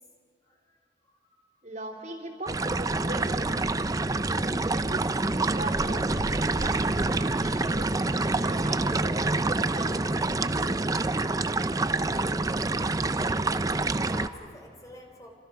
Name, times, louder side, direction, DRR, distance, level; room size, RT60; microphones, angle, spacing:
voice 1, 0.4-1.4 10.8-10.9 14.0-15.4, left 1 dB, 20° left, 2 dB, 3.3 m, -50 dB
voice 2, 1.6-3.7 4.7-5.1 5.4-8.0 8.4-10.9, right 1 dB, 40° right, 1 dB, 3.5 m, -40 dB
sound 1, 2.5-14.3, right 2 dB, 20° right, 0.5 m, -27 dB
29.0 x 26.5 x 5.8 m, 2.5 s
head